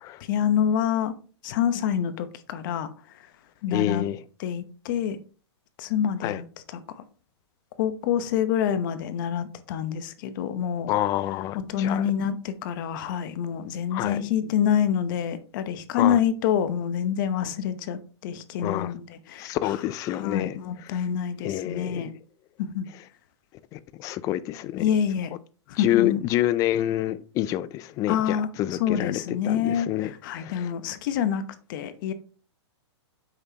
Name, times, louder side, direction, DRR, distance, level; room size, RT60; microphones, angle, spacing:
voice 1, 0.3-1.1 1.4-3.3 3.6-4.1 4.4-5.2 5.8-7.0 7.8-10.9 11.5-19.8 20.1-22.1 22.6-22.9 24.8-25.3 25.7-26.2 28.1-31.4 31.7-32.1, left 9 dB, 45° left, 0.9 m, -27 dB
voice 2, 3.7-4.2 6.2-6.4 10.9-12.1 13.9-14.2 16.0-16.2 18.6-18.9 19.4-21.0 21.4-22.1 23.7-24.8 25.8-30.7, left 13 dB, 25° left, 0.4 m, -28 dB
7.6 x 6.0 x 2.9 m
hypercardioid pair, 150°, 15 cm